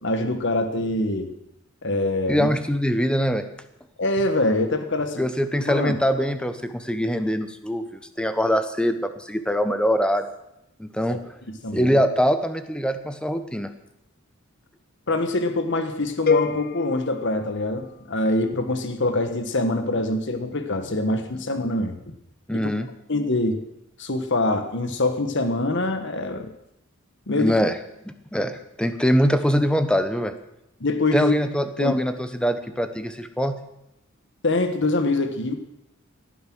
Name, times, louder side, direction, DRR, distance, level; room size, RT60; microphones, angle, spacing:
voice 1, 0.0-1.3 1.8-2.6 4.0-5.2 5.7-6.0 11.1-11.2 11.6-12.0 15.1-22.0 22.5-22.7 23.1-23.6 24.0-26.5 27.3-27.5 30.8-31.3 31.8-31.9 34.4-35.5, left 2 dB, 60° left, 7 dB, 1.5 m, -24 dB
voice 2, 2.3-3.4 5.2-10.3 10.8-11.2 11.7-13.7 22.5-22.9 27.3-27.8 28.3-30.3 31.1-33.5, equal, 5° left, 9 dB, 1.0 m, -23 dB
sound 1, 16.3-18.3, left 5 dB, 45° left, 0.6 m, -27 dB
17.0 x 10.0 x 6.3 m, 0.83 s
head